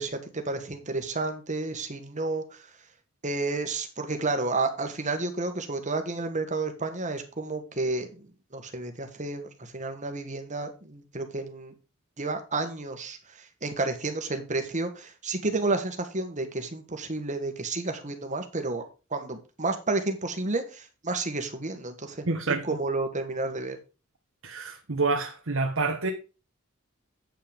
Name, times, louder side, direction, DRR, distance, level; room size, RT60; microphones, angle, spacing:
voice 1, 0.0-2.7 3.2-8.2 8.5-11.7 12.2-18.8 19.1-23.8, right 3 dB, 35° right, 1.7 m, -31 dB
voice 2, 22.3-22.6 24.4-26.1, right 3 dB, 70° right, 1.2 m, -27 dB
9.0 x 5.8 x 5.1 m
head